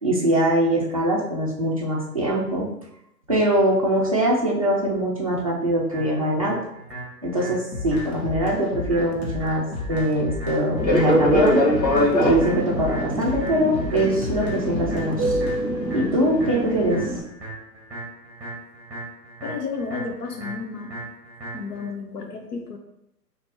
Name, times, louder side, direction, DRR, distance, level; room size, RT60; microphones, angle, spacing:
voice 1, 0.0-2.7 3.3-6.6 7.2-11.6 12.2-15.4 15.9-17.1, right 1 dB, 25° right, -5 dB, 0.4 m, -22 dB
sound 1, 5.9-21.9, right 2 dB, ahead, 1.1 m, -38 dB
sound 2, 7.7-15.6, left 3 dB, 40° left, 0.6 m, -33 dB
Fixed-wing aircraft airplane, 10.8-17.2, equal, 90° left, 1.2 m, -23 dB
voice 2, 19.4-21.0 21.5-22.8, left 4 dB, 65° left, 3 dB, 0.9 m, -32 dB
4.2 x 3.0 x 2.9 m, 0.80 s
figure-of-eight pair, 130°, 49 cm